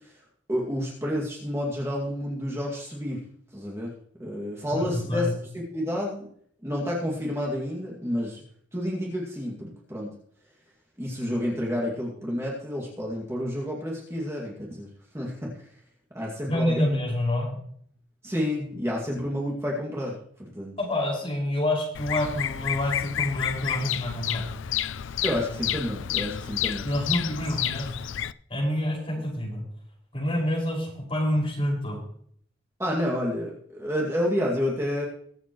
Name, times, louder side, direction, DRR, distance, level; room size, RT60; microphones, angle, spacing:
voice 1, 0.5-3.2 3.5-3.9 4.2-5.3 5.5-6.3 6.6-8.4 8.7-10.1 11.0-15.5 16.1-17.0 18.2-20.7 25.2-26.9 32.8-35.1, equal, 15° right, -3 dB, 2.2 m, -30 dB
voice 2, 4.7-5.3 16.5-17.6 20.8-24.5 26.8-27.9 28.5-29.6 30.1-32.0, left 1 dB, 30° left, -4 dB, 5.6 m, -27 dB
Bird vocalization bird call bird song, 21.9-28.3, left 10 dB, 85° left, 0.4 m, -30 dB
22.5 x 8.0 x 3.1 m, 0.63 s
head